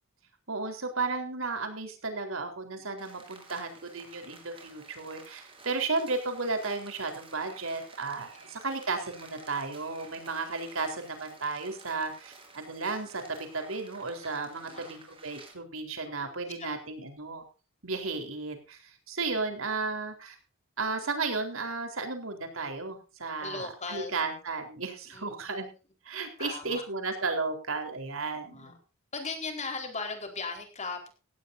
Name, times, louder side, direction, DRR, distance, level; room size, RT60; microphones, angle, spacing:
voice 1, 0.5-17.4 17.8-20.4 20.8-25.7 26.0-28.7, right 3 dB, 80° right, 5 dB, 4.2 m, -34 dB
Rain, 3.0-15.5, right 3 dB, 25° right, 4.9 m, -52 dB
voice 2, 14.6-14.9 16.2-16.8 23.4-24.1 25.1-25.2 26.4-26.8 28.5-28.7 29.1-31.1, left 4 dB, 35° left, 4 dB, 4.5 m, -38 dB
17.0 x 17.0 x 2.7 m, 0.34 s
head